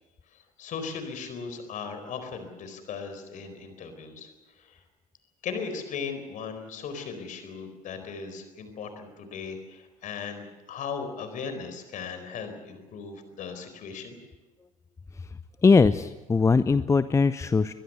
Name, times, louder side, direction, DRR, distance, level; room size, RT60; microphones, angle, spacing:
voice 1, 0.3-4.3 4.6-4.8 5.4-14.2, left 5 dB, 45° left, 9 dB, 4.5 m, -37 dB
voice 2, 15.6-17.7, left 4 dB, 15° left, 14 dB, 0.7 m, -20 dB
22.5 x 22.0 x 6.9 m, 1.2 s
figure-of-eight pair, 60°, 19 cm